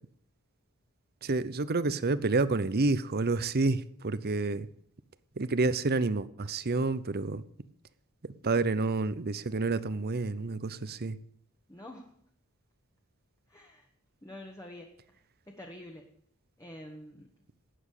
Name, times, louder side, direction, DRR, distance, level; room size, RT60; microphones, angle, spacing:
voice 1, 1.2-4.7 5.4-7.4 8.2-11.2, right 3 dB, 45° right, 16 dB, 0.8 m, -29 dB
voice 2, 11.7-12.1 13.5-13.9 14.2-15.2 15.5-16.2 16.6-17.3, left 1 dB, 15° left, 2 dB, 1.5 m, -47 dB
12.5 x 8.6 x 8.4 m, 0.63 s
head